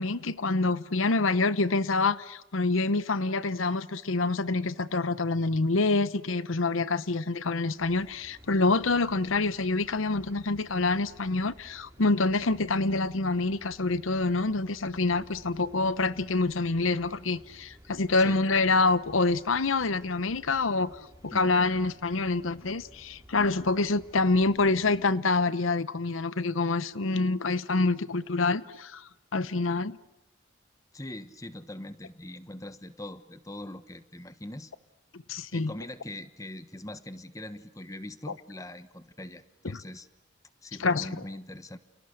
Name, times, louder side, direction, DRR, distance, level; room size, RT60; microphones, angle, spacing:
voice 1, 0.0-21.0 21.2-30.0 35.3-35.7 39.7-39.8 40.8-41.1, left 3 dB, 90° left, 0.9 m, -26 dB
sound 1, 7.8-25.0, equal, 15° right, 3.7 m, -54 dB
voice 2, 30.9-34.7 35.5-40.1 40.6-41.8, left 1 dB, 15° left, 1.1 m, -42 dB
29.5 x 29.5 x 6.6 m
head